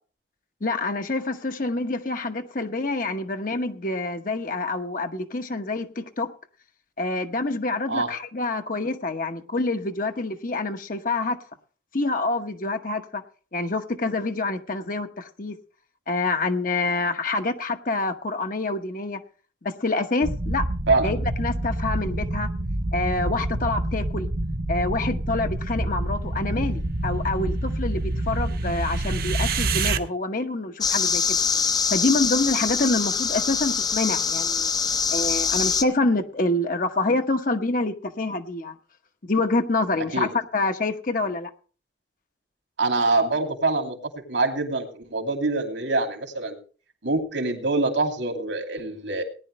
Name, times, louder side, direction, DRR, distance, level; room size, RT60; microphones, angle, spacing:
voice 1, 0.6-6.3 7.0-11.4 11.9-13.2 13.5-15.6 16.1-19.2 19.6-20.7 21.0-22.5 22.9-24.3 24.7-31.4 31.9-34.7 35.1-38.7 39.3-41.5, left 2 dB, 45° left, 6 dB, 1.0 m, -26 dB
sound 1, 20.2-30.0, right 2 dB, 55° right, 1.0 m, -27 dB
sound 2, 30.8-35.8, left 5 dB, 20° left, 0.7 m, -24 dB
voice 2, 42.8-46.5 47.0-49.2, right 3 dB, 80° right, 4 dB, 2.7 m, -25 dB
18.5 x 10.5 x 3.2 m, 0.38 s
head